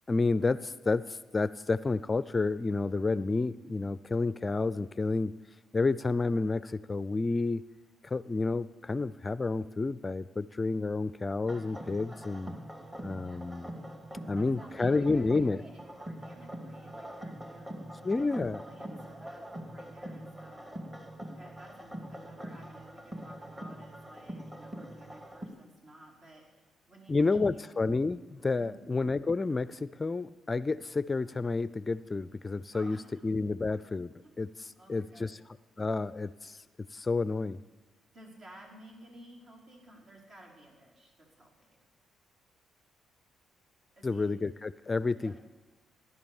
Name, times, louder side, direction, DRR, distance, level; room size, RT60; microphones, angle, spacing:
voice 1, 0.1-5.3 5.7-7.6 8.0-12.5 13.0-13.7 14.3-15.6 18.0-18.6 27.1-33.0 33.2-35.4 35.8-36.6 36.9-37.6 44.0-45.4, left 3 dB, 25° left, 16 dB, 0.4 m, -30 dB
sound 1, 11.4-25.5, right 1 dB, 20° right, 2.5 m, -44 dB
voice 2, 14.2-20.8 21.4-27.6 28.6-28.9 32.7-33.2 34.2-34.3 34.7-35.3 38.1-41.8 44.0-44.3 45.2-45.4, right 1 dB, 55° right, -2 dB, 5.5 m, -54 dB
18.0 x 11.0 x 7.1 m, 1.3 s
cardioid pair, 90°, 0 cm